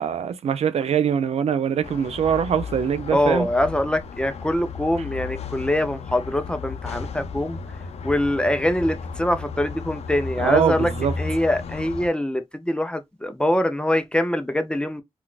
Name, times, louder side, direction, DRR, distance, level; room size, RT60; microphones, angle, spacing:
voice 1, 0.0-3.5 10.4-11.1, right 8 dB, 85° right, 0.4 m, -23 dB
sound 1, 1.8-12.1, left 5 dB, 90° left, 0.4 m, -34 dB
voice 2, 3.1-7.6 8.0-10.9 11.2-15.0, left 1 dB, 10° left, 0.5 m, -23 dB
3.8 x 2.3 x 2.3 m
wide cardioid pair, 85°, 10 cm